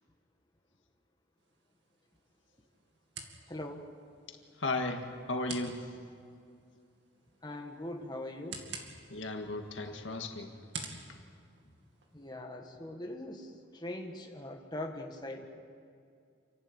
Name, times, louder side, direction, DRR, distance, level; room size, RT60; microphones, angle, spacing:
sound 1, 1.4-12.3, right 4 dB, 70° right, 2.4 m, -50 dB
voice 1, 3.5-3.9 7.4-8.7 12.1-15.5, left 1 dB, 20° left, 2 dB, 1.7 m, -41 dB
voice 2, 4.6-5.8 9.1-10.5, left 2 dB, 90° left, 4 dB, 1.9 m, -35 dB
28.5 x 12.0 x 8.8 m, 2.3 s
head